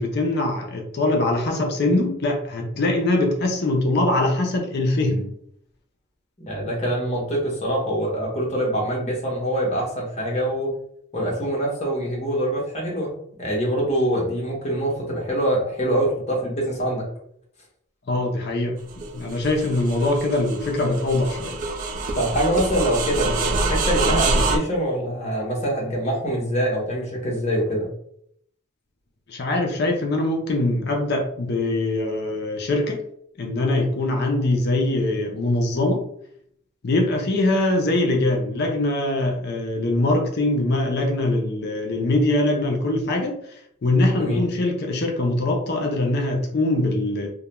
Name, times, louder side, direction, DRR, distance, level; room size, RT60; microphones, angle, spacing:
voice 1, 0.0-5.3 18.1-21.6 29.3-33.0 33.4-36.0 36.8-43.4 43.8-47.3, left 2 dB, 50° left, 2 dB, 0.4 m, -22 dB
voice 2, 6.4-10.7 11.1-17.1 22.1-27.9 44.1-44.5, equal, 30° left, -2 dB, 0.8 m, -24 dB
sound 1, 18.9-24.6, right 3 dB, 40° right, 0.3 m, -25 dB
2.3 x 2.1 x 2.9 m, 0.69 s
head